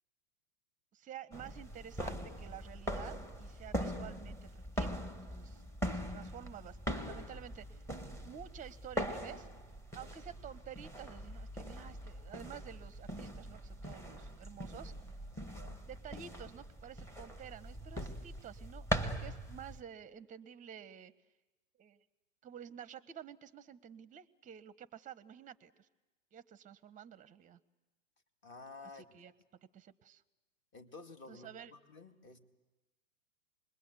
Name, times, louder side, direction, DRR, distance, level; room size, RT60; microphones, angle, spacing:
voice 1, 0.9-5.6 5.9-7.8 8.2-9.5 9.9-14.9 15.8-21.1 21.8-22.0 22.4-25.9 26.3-27.6 28.9-29.3 29.7-30.2 31.3-31.7, right 9 dB, 20° right, 16 dB, 0.9 m, -51 dB
sound 1, 1.3-19.8, equal, 5° left, 1.5 m, -41 dB
voice 2, 15.3-15.8 28.4-29.3 30.7-32.4, left 3 dB, 30° left, 5 dB, 2.4 m, -52 dB
27.5 x 21.5 x 8.3 m, 1.1 s
hypercardioid pair, 115°, 39 cm